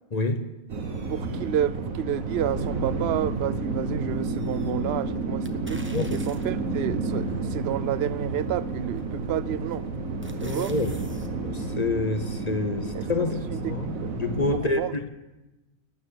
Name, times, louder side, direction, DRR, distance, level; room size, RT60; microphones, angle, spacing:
voice 1, 0.1-0.5 5.9-6.2 10.4-11.0 11.3-15.1, left 2 dB, 35° left, 8 dB, 0.9 m, -28 dB
sound 1, 0.7-14.6, right 3 dB, 75° right, 1.9 m, -31 dB
voice 2, 1.1-9.9 10.4-10.7 12.9-13.1 13.5-14.1 14.5-14.9, right 11 dB, 60° right, 17 dB, 0.7 m, -30 dB
sound 2, 5.4-6.7 7.3-7.4 9.0-9.3 9.7-11.3 11.6-11.7, right 1 dB, 10° right, 0.9 m, -46 dB
12.5 x 9.1 x 9.6 m, 1.1 s
omnidirectional pair, 1.5 m